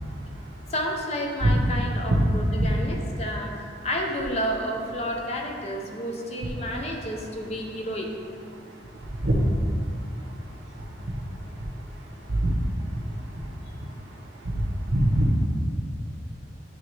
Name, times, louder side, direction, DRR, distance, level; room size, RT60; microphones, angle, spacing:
voice 1, 0.7-8.1, equal, 35° left, 1 dB, 0.7 m, -31 dB
voice 2, 14.9-15.3, right 1 dB, 70° right, -1 dB, 1.0 m, -20 dB
9.8 x 3.4 x 3.2 m, 2.2 s
head